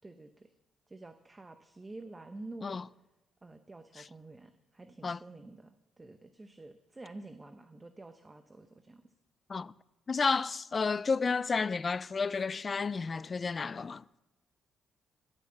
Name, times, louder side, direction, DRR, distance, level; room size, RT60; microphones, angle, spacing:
voice 1, 0.0-0.5 0.9-2.8 3.4-9.1, right 2 dB, 20° right, 0.7 m, -49 dB
voice 2, 10.1-14.0, left 4 dB, 35° left, 0.3 m, -31 dB
15.5 x 5.9 x 7.5 m
cardioid pair, 90°, 0 cm